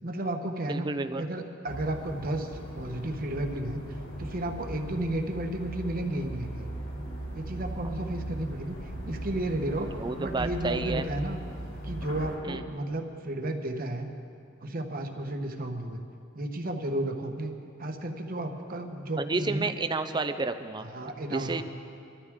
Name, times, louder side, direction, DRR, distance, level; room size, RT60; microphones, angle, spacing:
voice 1, 0.0-0.9 1.2-3.8 4.2-6.7 7.3-8.8 9.1-9.9 10.2-11.4 11.8-14.1 14.6-16.0 16.3-17.5 17.8-19.7 20.8-21.6, right 1 dB, 45° right, 5 dB, 1.1 m, -33 dB
voice 2, 0.7-1.2 10.0-11.1 12.4-12.6 19.2-20.9 21.3-21.6, right 3 dB, 20° right, 9 dB, 0.6 m, -30 dB
sound 1, 1.7-12.4, right 1 dB, 65° left, 4.1 m, -38 dB
24.0 x 13.0 x 3.7 m, 2.7 s
head